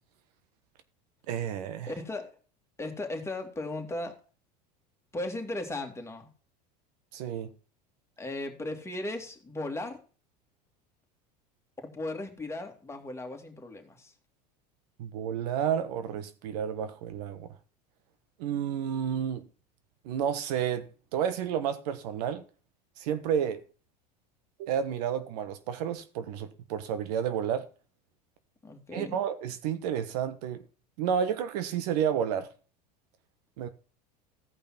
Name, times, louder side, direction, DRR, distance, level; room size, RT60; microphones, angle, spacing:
voice 1, 1.3-1.9 7.1-7.5 15.0-17.5 18.4-19.4 20.0-20.8 21.1-22.4 23.0-23.6 24.6-27.7 28.9-30.6 31.0-32.5 33.6-33.7, right 8 dB, 75° right, 1.3 m, -31 dB
voice 2, 1.9-2.3 2.8-4.2 5.1-6.3 8.2-10.0 11.9-14.1 28.6-29.2, left 2 dB, 15° left, 2.6 m, -36 dB
15.0 x 5.4 x 6.0 m
hypercardioid pair, 95°, 21 cm